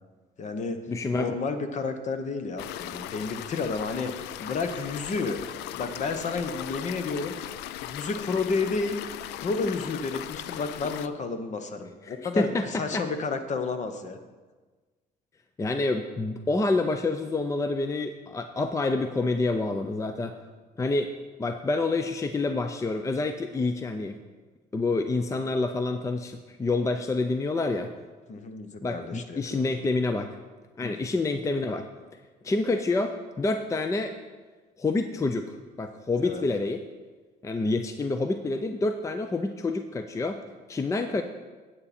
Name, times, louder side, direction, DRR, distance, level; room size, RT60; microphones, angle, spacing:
voice 1, 0.4-0.8 1.1-5.4 5.7-7.4 7.8-9.0 9.4-14.2 28.3-29.7 30.8-30.9 36.2-36.4, left 4 dB, 45° left, 8 dB, 1.0 m, -31 dB
voice 2, 0.9-1.3 12.1-13.0 15.6-20.3 20.8-21.1 21.4-24.2 24.7-27.9 28.8-30.3 30.8-31.9 32.4-34.1 34.8-36.8 37.4-40.4 40.7-41.2, left 3 dB, 20° left, 8 dB, 0.5 m, -28 dB
sound 1, 2.6-11.1, left 12 dB, 85° left, 0.4 m, -38 dB
9.7 x 8.8 x 4.3 m, 1.3 s
cardioid pair, 110°, 17 cm